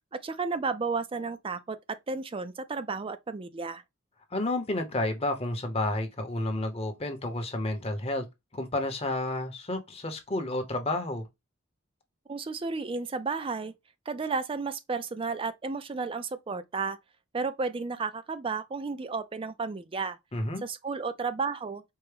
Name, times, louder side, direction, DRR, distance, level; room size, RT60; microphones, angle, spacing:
voice 1, 0.2-3.8 12.3-13.7 14.1-17.0 17.3-20.2 20.6-21.8, right 4 dB, 25° right, 0.4 m, -32 dB
voice 2, 4.3-8.2 8.5-11.3 20.3-20.6, left 2 dB, 30° left, 0.8 m, -31 dB
4.5 x 2.1 x 3.2 m
head